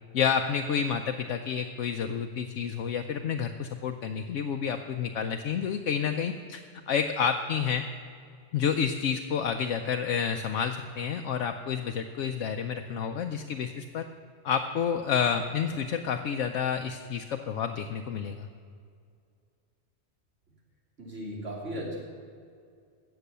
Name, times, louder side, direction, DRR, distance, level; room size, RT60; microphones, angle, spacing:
voice 1, 0.1-7.8 8.5-14.1 14.4-18.5, left 7 dB, 85° left, 5 dB, 1.0 m, -29 dB
voice 2, 21.0-22.0, equal, 85° right, -3 dB, 3.3 m, -36 dB
16.5 x 6.9 x 6.8 m, 2.3 s
omnidirectional pair, 1.2 m